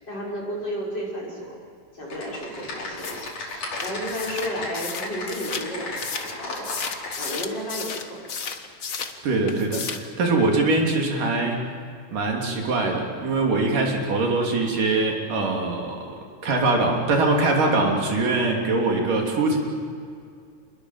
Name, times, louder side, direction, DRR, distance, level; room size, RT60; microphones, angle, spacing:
voice 1, 0.0-1.6 1.9-6.7 7.2-8.3, equal, 30° left, -3 dB, 6.1 m, -33 dB
Typing, 2.1-7.3, left 2 dB, 65° left, 6.4 m, -35 dB
sound 1, 3.0-9.2 9.5-10.1, left 5 dB, 85° left, 0.7 m, -34 dB
voice 2, 9.2-11.6 12.1-16.1 16.4-19.6, right 3 dB, 80° right, 0 dB, 4.7 m, -22 dB
27.5 x 21.5 x 7.6 m, 2.3 s
omnidirectional pair, 3.7 m